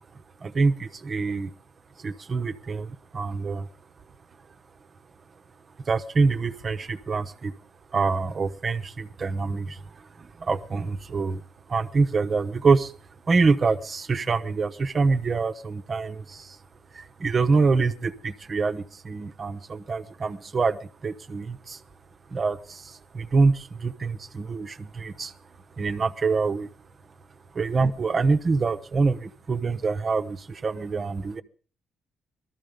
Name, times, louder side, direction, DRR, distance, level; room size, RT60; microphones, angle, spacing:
voice 1, 0.4-1.5 2.0-3.7 5.8-7.5 7.9-11.4 11.7-12.9 13.3-16.6 16.9-21.8 22.3-25.3 25.8-26.7 27.5-31.4, right 4 dB, 40° right, 11 dB, 1.0 m, -25 dB
19.5 x 13.5 x 5.2 m, 0.39 s
cardioid pair, 90°, 0 cm